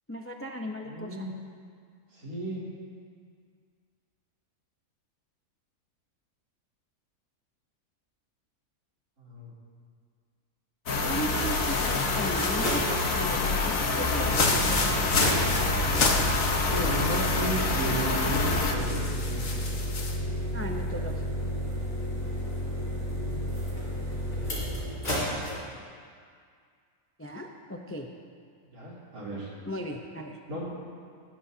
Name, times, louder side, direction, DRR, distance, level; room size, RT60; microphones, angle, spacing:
voice 1, 0.1-1.3 11.0-12.9 13.1-14.9 20.5-21.3 27.2-28.1 29.6-30.4, equal, 20° left, 2 dB, 0.3 m, -37 dB
voice 2, 0.8-1.3 2.1-2.6 9.2-9.5 15.9-16.1 16.7-19.5 28.7-29.5 30.5-30.7, right 1 dB, 70° right, -7 dB, 4.3 m, -34 dB
sound 1, 10.9-18.8, left 3 dB, 60° left, 1.5 m, -27 dB
sound 2, 11.3-17.5 17.9-18.0 18.8-20.2, left 4 dB, 80° left, 1.8 m, -31 dB
sound 3, 12.0-25.5, equal, 35° left, 4.4 m, -32 dB
19.0 x 14.0 x 2.8 m, 2.1 s
omnidirectional pair, 1.7 m